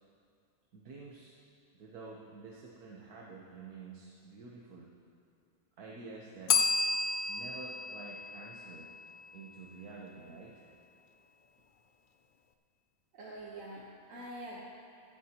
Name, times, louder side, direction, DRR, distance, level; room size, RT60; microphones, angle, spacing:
voice 1, 0.7-1.3 1.7-4.9 5.8-6.6 7.3-8.9 9.3-10.7, right 3 dB, 80° right, -3 dB, 1.5 m, -49 dB
Bell, 6.5-9.3, left 4 dB, 65° left, 0.5 m, -32 dB
voice 2, 13.1-14.6, right 1 dB, 60° right, -4 dB, 1.5 m, -45 dB
15.0 x 13.5 x 2.9 m, 2.5 s
omnidirectional pair, 1.6 m